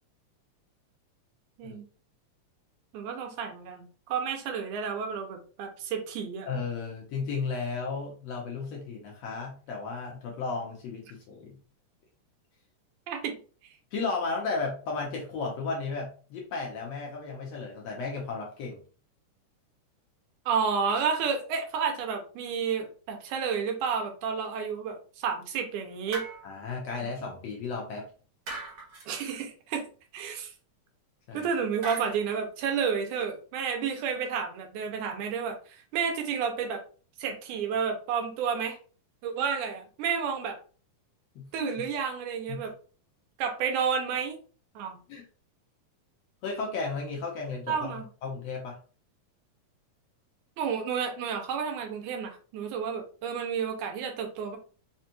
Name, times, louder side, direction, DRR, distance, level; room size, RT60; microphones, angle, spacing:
voice 1, 2.9-6.5 13.1-13.3 20.5-26.2 29.1-29.9 30.1-30.5 31.3-35.6 35.9-36.8 37.2-38.8 39.2-40.6 41.5-42.7 43.4-44.4 44.8-45.0 47.7-48.1 50.6-54.6, right 6 dB, 85° right, 4 dB, 2.2 m, -31 dB
voice 2, 6.4-11.6 13.9-18.8 26.4-28.1 31.3-31.5 41.3-41.9 42.5-42.7 45.1-45.2 46.4-48.8, left 4 dB, 70° left, -1 dB, 1.7 m, -34 dB
sound 1, 26.1-26.7 28.5-29.1 31.8-32.3, right 2 dB, 60° right, 1.4 m, -39 dB
5.1 x 2.3 x 2.8 m, 0.39 s
omnidirectional pair, 3.6 m